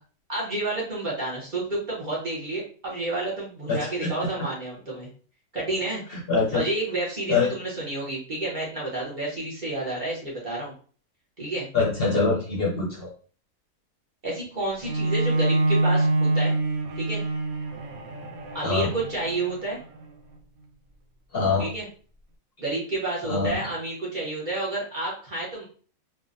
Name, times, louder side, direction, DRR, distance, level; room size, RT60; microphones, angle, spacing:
voice 1, 0.3-5.1 5.5-6.0 6.5-10.7 11.4-11.7 14.2-16.1 16.3-16.5 17.0-17.2 18.5-19.8 21.6-21.9 22.6-25.6, right 2 dB, 40° right, -5 dB, 1.0 m, -30 dB
voice 2, 3.7-4.1 6.1-6.6 7.3-7.5 11.7-13.1 18.6-18.9 21.3-21.7 23.2-23.6, left 4 dB, 55° left, -3 dB, 0.8 m, -24 dB
Bowed string instrument, 14.8-20.0, right 2 dB, 85° right, 1.1 m, -25 dB
3.3 x 2.1 x 2.5 m, 0.42 s
omnidirectional pair, 1.5 m